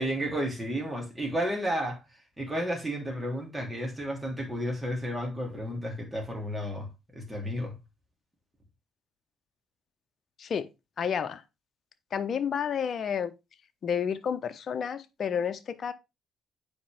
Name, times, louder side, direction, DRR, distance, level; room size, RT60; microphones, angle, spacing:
voice 1, 0.0-2.0 2.4-6.9 7.1-7.8, equal, 10° right, 3.3 m, -32 dB
voice 2, 11.0-11.4 12.1-13.3 13.8-15.9, left 7 dB, 50° left, 1.0 m, -30 dB
8.4 x 5.1 x 3.6 m
cardioid pair, 85°, 0 cm